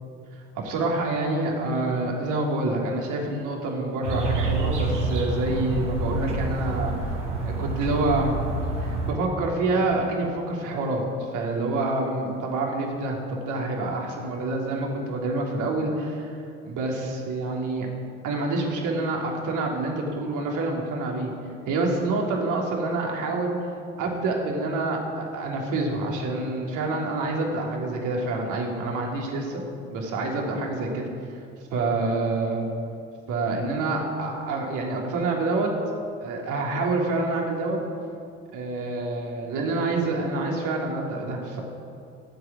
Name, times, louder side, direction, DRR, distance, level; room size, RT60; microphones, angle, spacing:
voice 1, 0.3-6.9 7.4-8.3 8.8-16.4 16.6-17.9 18.2-21.3 21.7-23.7 24.0-29.6 29.9-31.1 31.7-32.6 33.3-35.7 36.2-37.8 38.5-41.6, right 2 dB, 55° right, -1 dB, 3.4 m, -27 dB
sound 1, 4.0-9.1, right 2 dB, 85° right, 2.5 m, -27 dB
15.0 x 8.0 x 8.7 m, 2.5 s
figure-of-eight pair, 60°, 36 cm